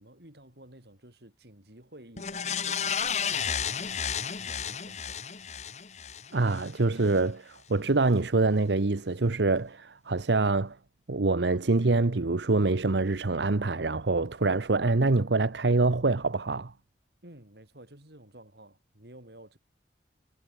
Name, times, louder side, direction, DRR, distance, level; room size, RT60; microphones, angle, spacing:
voice 1, 0.0-5.2 17.2-19.6, right 1 dB, 70° right, 6.0 m, -52 dB
sound 1, 2.2-6.7 7.1-7.2, left 7 dB, 40° left, 1.9 m, -32 dB
voice 2, 6.3-10.8 11.1-16.7, right 3 dB, 85° right, 0.9 m, -25 dB
head